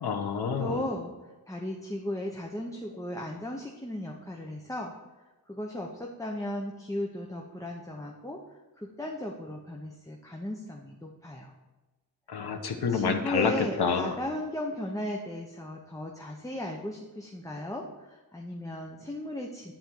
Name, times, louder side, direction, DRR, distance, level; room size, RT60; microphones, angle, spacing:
voice 1, 0.0-0.8 12.3-13.5 13.8-14.1, left 6 dB, 80° left, 4 dB, 1.1 m, -28 dB
voice 2, 0.6-4.9 5.5-8.4 8.8-11.5 12.9-19.7, left 1 dB, 10° left, 0 dB, 0.9 m, -36 dB
10.5 x 4.3 x 7.8 m, 1.1 s
wide cardioid pair, 120°, 38 cm